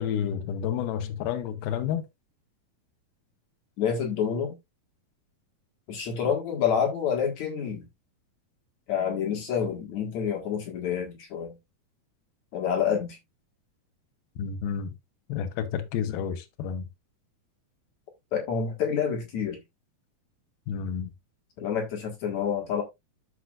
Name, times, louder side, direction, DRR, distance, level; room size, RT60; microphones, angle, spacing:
voice 1, 0.0-2.1 14.4-15.0 15.3-16.9 20.7-21.1, left 8 dB, 90° left, 2.7 m, -30 dB
voice 2, 3.8-4.6 5.9-7.9 8.9-11.6 12.5-13.2 18.3-19.6 21.6-22.8, left 7 dB, 60° left, 2.6 m, -28 dB
12.5 x 5.0 x 2.4 m
omnidirectional pair, 4.2 m